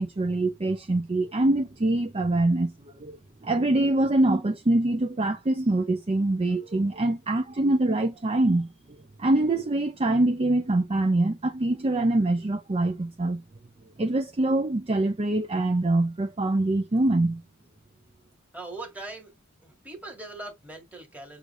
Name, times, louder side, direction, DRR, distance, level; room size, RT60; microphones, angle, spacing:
voice 1, 0.0-3.2 3.4-8.7 9.2-13.4 14.0-17.4, right 2 dB, 30° right, 0.5 m, -24 dB
voice 2, 18.5-19.3 19.6-21.4, right 2 dB, 5° right, 1.8 m, -40 dB
6.5 x 2.5 x 3.1 m
head